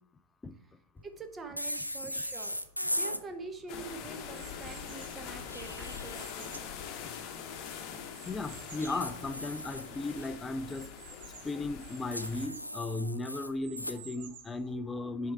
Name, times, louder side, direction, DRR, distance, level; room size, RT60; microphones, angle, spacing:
voice 1, 1.0-2.6 3.0-6.5 11.4-11.6, right 4 dB, 15° right, 0.8 m, -45 dB
sound 1, 1.6-3.2 5.3-6.6 8.8-10.3 12.1-14.0, equal, 90° left, 0.3 m, -38 dB
sound 2, 1.7-2.7 3.3-5.3 5.8-7.5 8.1-9.1 9.5-9.6 9.9-10.0 10.7-12.7 13.3-14.7, right 8 dB, 55° right, 0.8 m, -53 dB
sound 3, 3.7-12.5, left 7 dB, 40° left, 0.9 m, -43 dB
voice 2, 8.3-10.9 11.4-15.3, left 2 dB, 15° left, 0.4 m, -36 dB
6.2 x 4.6 x 4.6 m
figure-of-eight pair, 90°, 0 cm